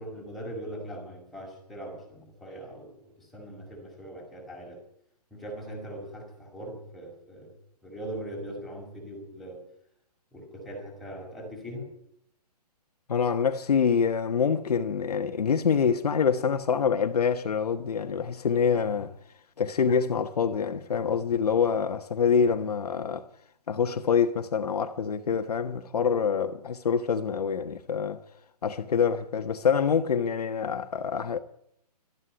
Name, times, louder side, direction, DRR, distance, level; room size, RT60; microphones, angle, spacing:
voice 1, 0.0-4.8 5.3-7.5 7.8-9.6 10.3-11.9, right 1 dB, ahead, 5.4 m, -40 dB
voice 2, 13.1-19.1 19.6-23.3 23.7-28.2 28.6-31.4, left 6 dB, 70° left, 1.4 m, -26 dB
13.5 x 11.5 x 9.5 m
hypercardioid pair, 150°, 21 cm